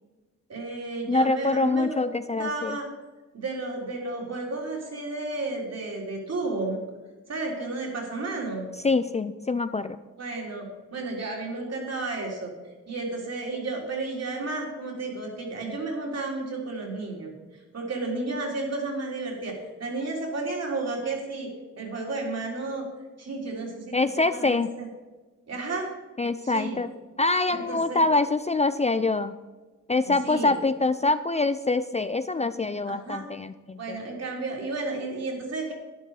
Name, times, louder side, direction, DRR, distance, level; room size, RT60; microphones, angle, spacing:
voice 1, 0.5-2.0 2.4-2.9 3.3-6.8 7.3-8.7 10.2-12.5 12.9-17.3 17.7-21.5 21.8-22.9 23.2-24.0 24.3-24.9 25.5-25.9 26.4-26.8 27.5-28.1 30.0-30.5 32.8-33.2 33.8-35.7, right 3 dB, 55° right, 0 dB, 3.7 m, -32 dB
voice 2, 1.1-2.8 8.8-10.0 23.9-24.7 26.2-26.9 27.2-29.3 29.9-34.0, left 3 dB, 20° left, 11 dB, 0.4 m, -25 dB
11.5 x 10.5 x 4.8 m, 1.3 s
wide cardioid pair, 105°, 30 cm